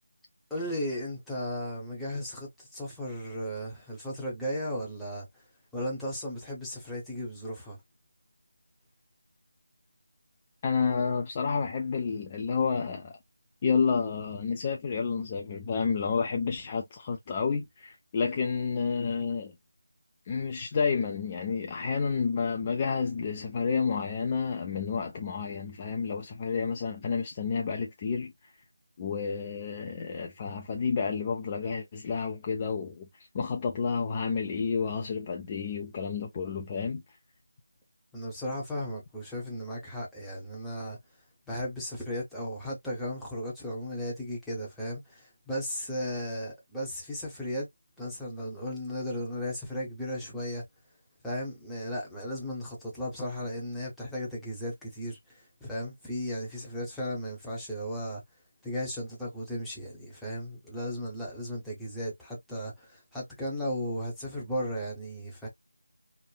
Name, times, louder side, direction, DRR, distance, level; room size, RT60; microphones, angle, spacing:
voice 1, 0.5-5.3 5.7-7.8 38.1-41.0 41.5-47.7 48.0-50.6 51.2-58.2 58.6-65.5, equal, ahead, 0.7 m, -35 dB
voice 2, 10.6-13.2 13.6-19.5 20.3-28.3 29.0-37.0, left 5 dB, 25° left, 0.3 m, -30 dB
3.1 x 2.0 x 2.2 m
figure-of-eight pair, 165°, 0 cm